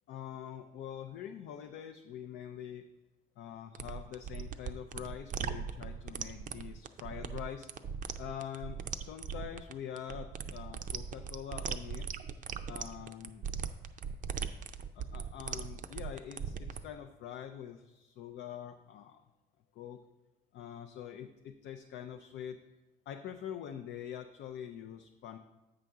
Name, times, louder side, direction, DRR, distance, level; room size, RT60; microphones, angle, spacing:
voice 1, 0.1-2.8 3.4-7.7 8.2-12.1 12.7-13.5 14.9-19.2 19.7-20.0 20.5-22.6 23.1-25.4, left 9 dB, 70° left, 5 dB, 0.5 m, -44 dB
sound 1, 3.7-16.8, right 7 dB, 45° right, 0.4 m, -39 dB
8.0 x 5.7 x 3.6 m, 1.0 s
cardioid pair, 95°, 19 cm